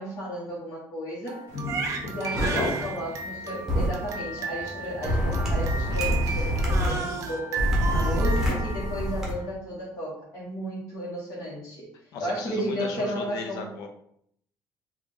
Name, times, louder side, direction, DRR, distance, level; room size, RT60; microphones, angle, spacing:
voice 1, 0.0-1.4 2.1-11.9 12.2-13.6, equal, 50° left, -6 dB, 1.2 m, -33 dB
Crying sobbing, 1.3-9.4, right 4 dB, 50° right, 0.5 m, -34 dB
sound 1, 1.5-7.3, left 2 dB, 30° left, 1.2 m, -39 dB
voice 2, 2.3-2.8 12.1-13.9, left 4 dB, 70° left, 4 dB, 0.7 m, -36 dB
sound 2, 2.4-2.5 3.7-3.9 5.0-6.9 7.6-9.3, equal, 5° right, 1.0 m, -25 dB
3.6 x 2.4 x 3.7 m, 0.68 s
cardioid pair, 165°, 7 cm